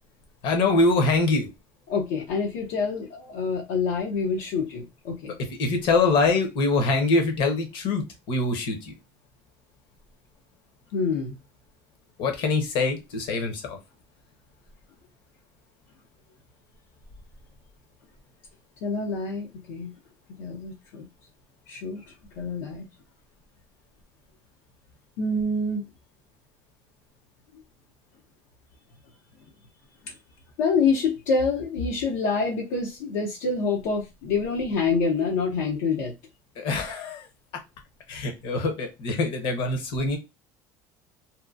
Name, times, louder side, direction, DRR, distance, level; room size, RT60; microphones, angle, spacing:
voice 1, 0.4-1.5 5.3-8.9 12.2-13.8 36.6-37.3 38.1-40.2, left 3 dB, 65° left, 0.9 m, -24 dB
voice 2, 1.9-5.4 10.9-11.4 18.8-19.9 20.4-21.1 21.7-22.9 25.2-25.8 30.0-30.1 30.6-36.1, left 4 dB, 85° left, 0.7 m, -27 dB
2.8 x 2.2 x 2.4 m
supercardioid pair, 110°, 9 cm